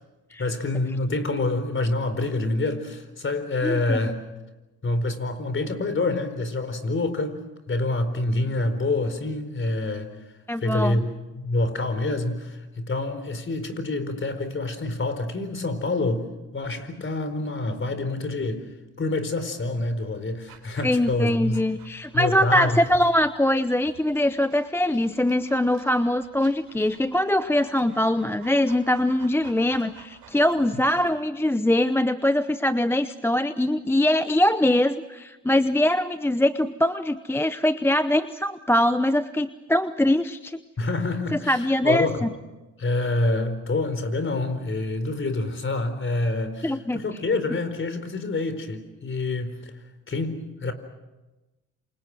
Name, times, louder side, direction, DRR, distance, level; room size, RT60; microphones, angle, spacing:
voice 1, 0.4-4.2 4.8-7.4 7.7-10.1 10.6-16.3 16.5-18.7 19.0-21.6 22.1-22.8 40.8-42.2 42.8-49.8 50.1-50.7, left 2 dB, 35° left, 10 dB, 4.5 m, -27 dB
voice 2, 3.6-4.0 10.5-11.0 20.8-40.6 41.3-42.3 46.6-47.0, left 1 dB, 5° left, 12 dB, 0.8 m, -22 dB
Dog, 20.5-31.2, right 8 dB, 65° right, 4.3 m, -52 dB
28.0 x 27.0 x 6.2 m, 1.1 s
hypercardioid pair, 65°, 37 cm